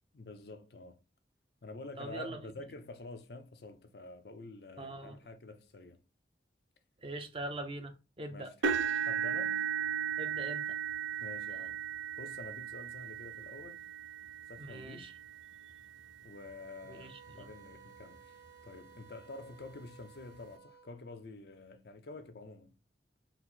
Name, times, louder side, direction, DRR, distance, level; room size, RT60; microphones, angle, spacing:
voice 1, 0.1-1.0 1.6-6.0 8.3-8.6 9.1-9.6 11.2-11.8 12.2-13.8 14.5-15.1 16.2-18.3 18.6-22.8, left 3 dB, 60° left, 0.6 m, -48 dB
voice 2, 2.0-2.5 4.8-5.2 7.0-8.5 10.2-10.8 14.6-15.1 16.8-17.5, right 1 dB, 30° right, 0.6 m, -43 dB
sound 1, 8.6-16.7 17.3-17.5 18.0-18.1 19.5-19.6, right 8 dB, 85° right, 0.5 m, -36 dB
sound 2, 16.3-20.9, right 5 dB, 60° right, 1.4 m, -57 dB
4.1 x 2.0 x 4.3 m
head